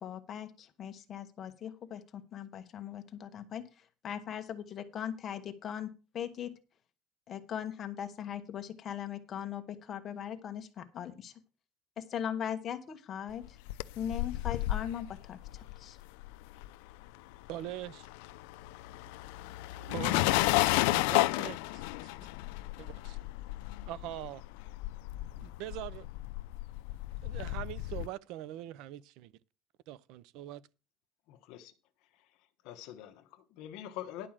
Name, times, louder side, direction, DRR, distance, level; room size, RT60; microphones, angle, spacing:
voice 1, 0.0-6.5 7.3-11.3 12.0-13.6 14.0-16.0, left 9 dB, 30° left, 1.1 m, -39 dB
sound 1, 13.4-17.1 17.3-28.1, left 19 dB, 85° left, 0.5 m, -33 dB
voice 2, 17.5-18.1 19.8-20.3 20.9-22.2 22.8-23.2 23.9-24.4 25.4-26.1 27.2-29.3 29.9-30.6, right 14 dB, 55° right, 0.6 m, -42 dB
voice 3, 31.3-31.7 32.6-34.3, left 12 dB, 55° left, 1.0 m, -44 dB
11.0 x 4.9 x 7.4 m
cardioid pair, 175°, 0 cm